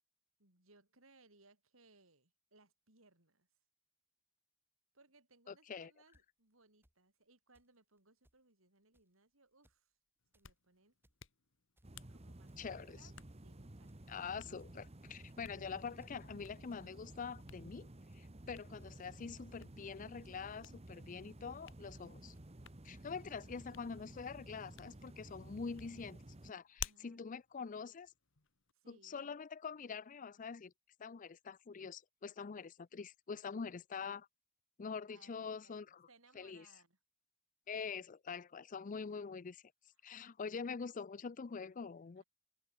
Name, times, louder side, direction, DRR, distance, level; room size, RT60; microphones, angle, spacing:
voice 1, 0.4-3.5 4.9-9.9 10.3-10.9 12.1-13.1 13.4-13.9 26.8-27.3 27.7-28.0 28.7-29.3 32.6-32.7 35.1-37.0 40.0-40.3 42.2-42.3, right 3 dB, 85° right, 7.0 m, -68 dB
voice 2, 5.5-5.9 12.6-13.0 14.1-17.9 18.1-22.3 22.8-26.2 26.4-28.1 28.9-30.7 31.0-34.3 34.8-36.1 36.3-36.7 37.7-39.6 40.0-42.2, left 5 dB, 40° left, 0.5 m, -45 dB
sound 1, 6.1-6.2 6.8-6.9 7.5-7.7 8.0-8.1 8.2-8.4 8.9-9.1 9.5-9.8 10.2-10.5 10.9-11.2 11.8-12.1 12.5-12.7 13.2-13.4 13.9-14.0 14.3-14.7 15.2-15.6 16.0-16.2 16.7-16.8 17.1-17.5 18.1-18.2 18.8-18.9 19.5-19.8 20.2-20.5 20.9-21.1 21.6-21.8 22.3-22.5 23.1-23.2, equal, 10° right, 5.5 m, -73 dB
Hands, 10.2-28.7, left 9 dB, 65° left, 1.7 m, -56 dB
sound 2, 11.8-26.5, right 1 dB, 30° right, 1.3 m, -54 dB
open air
head